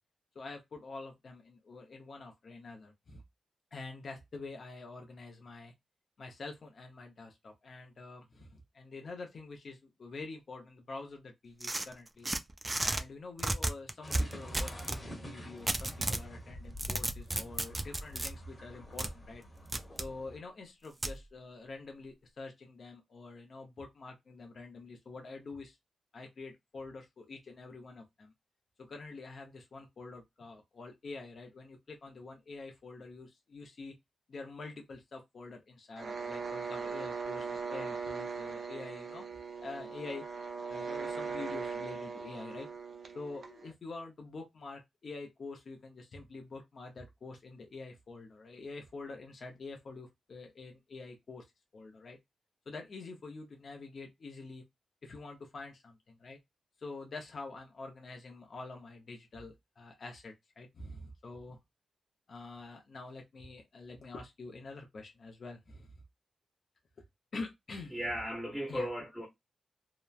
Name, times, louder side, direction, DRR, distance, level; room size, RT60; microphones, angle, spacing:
voice 1, 0.3-3.2 3.7-5.7 6.2-12.3 12.8-19.4 19.9-25.8 26.1-28.3 28.8-34.0 34.3-39.3 39.6-40.3 40.7-42.7 43.1-51.4 51.7-52.2 52.7-54.6 55.0-56.4 56.8-61.6 62.3-65.9 67.3-68.0 68.7-68.9, left 3 dB, 55° left, 0.6 m, -46 dB
sound 1, 11.6-13.0 13.4-15.0 15.7-16.3 16.6-18.3 19.0-19.1 19.7-20.1 21.0-21.2, right 2 dB, 20° right, 0.3 m, -33 dB
sound 2, 14.0-20.4, equal, 25° left, 1.0 m, -48 dB
sound 3, 36.0-43.7, right 5 dB, 60° right, 0.6 m, -39 dB
voice 2, 67.9-69.3, equal, 5° left, 0.8 m, -36 dB
2.8 x 2.1 x 2.3 m
wide cardioid pair, 110°, 0 cm